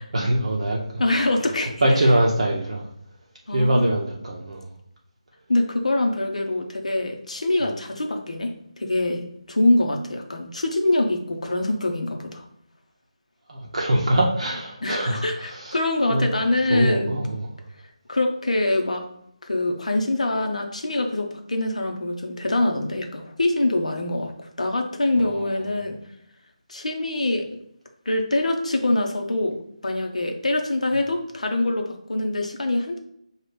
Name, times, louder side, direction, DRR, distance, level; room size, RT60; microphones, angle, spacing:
voice 1, 0.1-1.0 1.8-2.9 3.5-4.7 13.5-15.8 16.1-16.3 16.7-17.5 25.3-25.5, right 1 dB, 60° right, -2 dB, 0.7 m, -23 dB
voice 2, 1.0-1.7 3.5-3.9 5.5-12.4 14.8-17.2 18.1-19.0 19.4-26.0 26.7-27.6 28.1-33.0, left 2 dB, 70° left, 3 dB, 0.8 m, -24 dB
6.2 x 2.4 x 3.3 m, 0.75 s
figure-of-eight pair, 155°, 4 cm